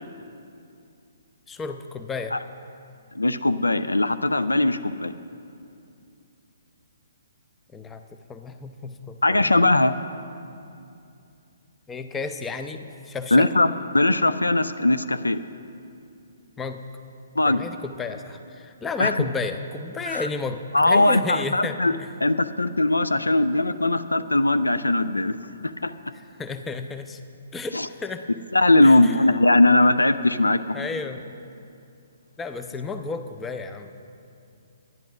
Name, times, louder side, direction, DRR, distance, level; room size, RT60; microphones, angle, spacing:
voice 1, 1.5-2.4 7.7-8.0 8.3-9.5 11.9-13.5 16.6-16.8 17.5-22.1 26.4-27.2 27.5-28.2 28.8-29.2 30.7-31.2 32.4-33.9, left 4 dB, 10° left, 8 dB, 0.5 m, -32 dB
voice 2, 3.1-5.1 9.2-9.9 13.3-15.4 17.4-17.6 19.0-19.3 20.0-20.3 20.7-22.0 22.2-25.4 25.6-25.9 27.7-27.9 28.5-30.9, left 2 dB, 80° left, 12 dB, 0.4 m, -20 dB
10.5 x 10.5 x 6.0 m, 2.5 s
figure-of-eight pair, 125°, 0 cm